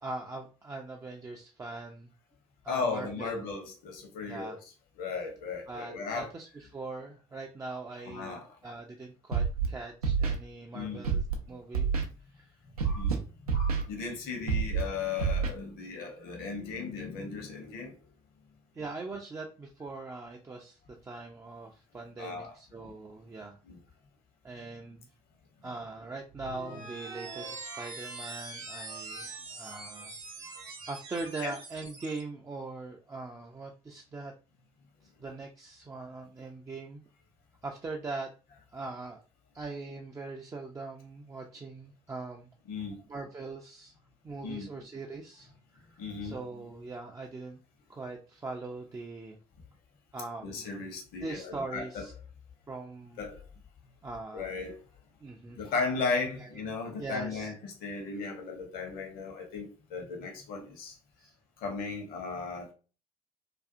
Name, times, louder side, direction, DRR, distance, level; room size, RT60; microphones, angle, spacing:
voice 1, 0.0-2.1 2.6-3.5 4.3-4.6 5.7-11.9 12.3-12.6 18.7-23.6 24.4-25.1 25.6-30.1 30.9-34.3 35.2-37.0 37.6-38.3 38.7-39.3 39.5-42.5 43.1-43.9 44.2-47.6 47.9-49.4 50.1-50.9 51.2-52.1 52.7-53.2 54.0-54.5 55.2-55.7 56.3-56.6 56.9-57.5 61.2-61.3, right 3 dB, 15° right, 0.4 m, -41 dB
voice 2, 2.7-4.6 5.0-6.3 8.1-8.4 10.7-11.0 11.5-11.6 12.8-13.2 13.4-18.0 22.2-22.5 23.7-23.8 31.4-31.5 42.7-43.0 44.4-44.7 46.0-46.4 50.4-52.0 53.2-53.4 54.3-54.7 55.6-60.9 61.6-62.7, left 4 dB, 55° left, 0.9 m, -36 dB
Scratching (performance technique), 9.3-9.7 10.0-10.3 11.0-11.3 11.7-12.0 12.8-13.1 13.5-13.8 14.5-14.8 15.2-15.5, right 6 dB, 85° right, 0.4 m, -27 dB
sound 1, 26.3-32.2, right 3 dB, 65° right, 0.8 m, -43 dB
2.4 x 2.3 x 2.5 m
figure-of-eight pair, 50°, 19 cm